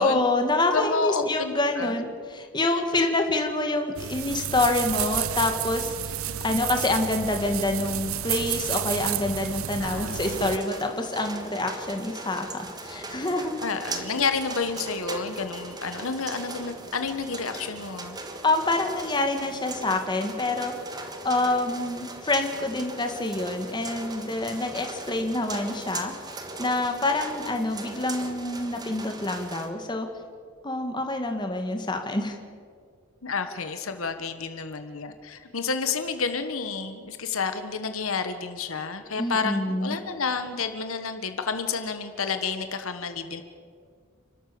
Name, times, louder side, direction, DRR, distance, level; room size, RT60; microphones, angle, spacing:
voice 1, 0.0-6.2 6.4-13.6 18.4-20.7 21.2-26.1 26.6-30.1 30.6-32.4 39.2-40.0, left 2 dB, 20° left, 4 dB, 1.8 m, -27 dB
voice 2, 0.7-1.9 2.7-2.8 9.8-10.3 13.6-18.2 33.2-43.4, left 5 dB, 75° left, 8 dB, 1.4 m, -30 dB
sound 1, 4.0-10.6, right 10 dB, 75° right, 0.7 m, -31 dB
sound 2, 10.2-29.7, right 2 dB, 20° right, 1.5 m, -39 dB
30.0 x 13.0 x 7.0 m, 2.1 s
head